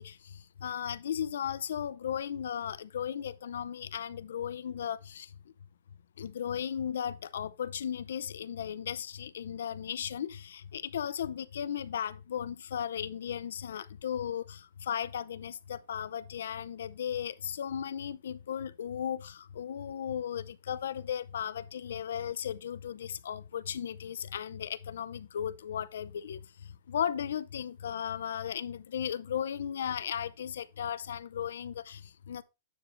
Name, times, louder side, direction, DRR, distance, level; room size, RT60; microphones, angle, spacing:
voice 1, 0.0-5.3 6.2-32.4, left 9 dB, 90° left, 0.5 m, -36 dB
9.3 x 6.1 x 2.6 m
supercardioid pair, 165°, 0 cm